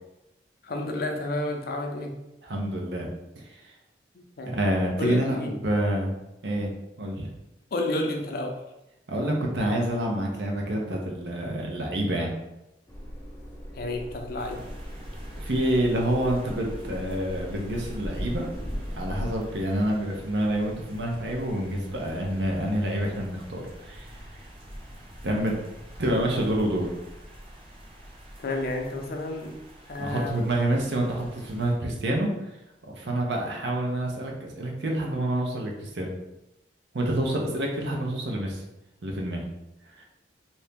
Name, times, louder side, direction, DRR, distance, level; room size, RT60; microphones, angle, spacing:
voice 1, 0.6-2.1 4.1-4.5 5.0-5.5 7.7-8.5 13.8-14.6 28.4-29.6 29.9-30.5, left 2 dB, 60° left, 2 dB, 0.5 m, -30 dB
voice 2, 2.4-3.1 3.4-3.6 4.5-6.2 6.4-7.3 9.1-12.3 15.4-18.5 18.9-24.2 25.2-25.5 26.0-26.9 30.0-32.3 32.9-36.1 36.9-38.6 39.0-39.4 40.0-40.1, right 1 dB, 70° right, 0 dB, 0.7 m, -27 dB
sound 1, 12.9-19.4, equal, 15° left, 0.6 m, -38 dB
sound 2, 14.4-31.7, equal, 35° right, 0.7 m, -45 dB
2.8 x 2.6 x 3.5 m, 0.92 s
head